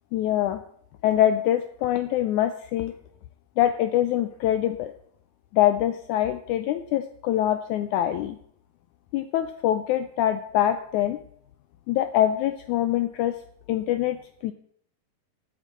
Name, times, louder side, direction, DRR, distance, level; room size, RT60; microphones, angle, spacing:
voice 1, 0.1-0.6 1.0-2.9 3.6-4.9 5.5-8.4 9.1-11.2 11.9-13.3 13.7-14.5, left 12 dB, 80° left, 9 dB, 1.8 m, -24 dB
9.0 x 8.3 x 8.3 m, 0.64 s
omnidirectional pair, 4.1 m